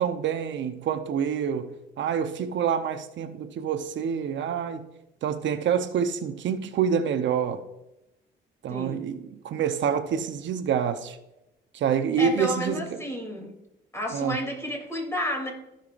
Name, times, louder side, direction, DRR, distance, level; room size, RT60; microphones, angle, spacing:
voice 1, 0.0-4.8 5.2-7.6 8.6-11.2 11.7-13.0 14.1-14.4, right 7 dB, 70° right, 0.8 m, -27 dB
voice 2, 8.7-9.1 12.2-13.5 13.9-15.5, equal, 15° left, 3.0 m, -31 dB
16.0 x 5.7 x 2.5 m
cardioid pair, 90°, 20 cm